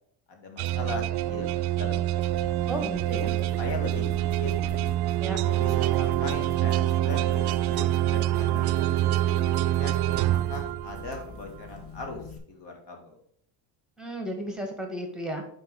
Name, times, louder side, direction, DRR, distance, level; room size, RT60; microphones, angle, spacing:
voice 1, 0.3-2.2 3.6-4.6 5.3-8.7 9.3-9.9 10.3-13.2, left 3 dB, 55° left, 3 dB, 1.9 m, -39 dB
sound 1, 0.6-11.2, right 14 dB, 55° right, 0.5 m, -26 dB
sound 2, 2.2-12.4, left 2 dB, 25° left, 1.6 m, -44 dB
voice 2, 2.7-3.3 5.2-5.4 14.0-15.5, right 1 dB, ahead, 3 dB, 1.8 m, -34 dB
5.6 x 5.1 x 5.3 m, 0.67 s
supercardioid pair, 85°, 50 cm